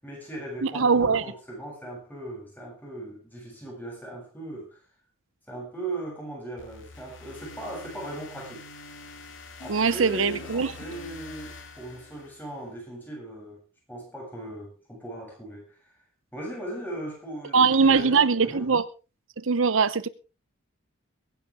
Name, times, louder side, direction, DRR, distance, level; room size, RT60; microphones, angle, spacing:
voice 1, 0.0-4.8 5.5-8.7 9.6-13.6 13.9-15.9 16.3-18.7, right 2 dB, 10° left, 7.6 m, -38 dB
voice 2, 0.6-1.2 9.7-10.7 17.5-18.8 19.4-20.1, right 5 dB, 75° right, 0.8 m, -21 dB
sound 1, 6.6-12.7, left 2 dB, 70° left, 2.6 m, -45 dB
22.5 x 10.5 x 3.5 m
head